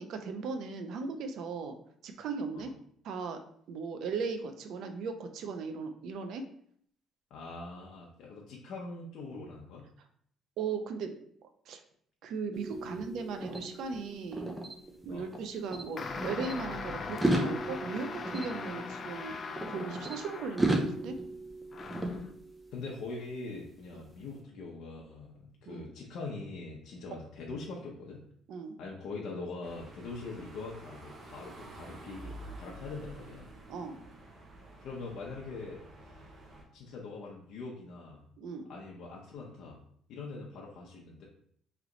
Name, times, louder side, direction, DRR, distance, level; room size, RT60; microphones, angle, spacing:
voice 1, 0.0-1.8 2.0-2.7 3.0-3.4 3.7-6.5 10.6-11.2 11.7-11.8 12.2-14.5 15.0-21.2 25.7-25.9 28.5-28.8 33.7-34.0 38.4-38.7, right 4 dB, 65° right, 7 dB, 0.5 m, -37 dB
voice 2, 7.3-9.8 12.8-13.0 15.1-15.3 22.7-28.2 28.8-33.5 34.8-35.8 36.7-38.2 38.7-39.8 40.1-41.3, left 3 dB, 65° left, -2 dB, 0.7 m, -43 dB
sound 1, 12.5-15.4 15.7-16.5 17.1-20.2 20.6-22.8, right 1 dB, 10° right, 0.6 m, -34 dB
sound 2, 16.0-21.0 21.7-22.3, left 4 dB, 35° left, 0.4 m, -40 dB
sound 3, 29.6-36.6, right 1 dB, 40° right, 1.0 m, -49 dB
3.2 x 2.9 x 3.8 m, 0.63 s
cardioid pair, 130°, 0 cm